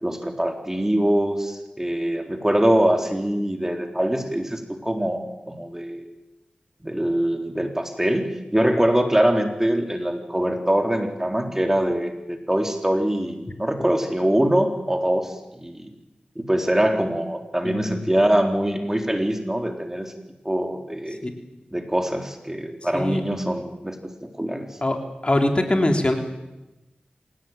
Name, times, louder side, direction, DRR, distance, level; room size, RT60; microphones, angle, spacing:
voice 1, 0.0-6.1 6.8-15.3 15.6-15.9 16.4-20.1 20.4-21.2 21.7-24.0 24.2-24.7, right 1 dB, 15° right, 4 dB, 3.8 m, -23 dB
voice 2, 17.6-18.1 21.2-21.3 22.9-23.2 24.8-25.0 25.2-26.1, left 1 dB, 35° left, 4 dB, 3.4 m, -22 dB
26.5 x 17.5 x 9.2 m, 0.99 s
cardioid pair, 50°, 3 cm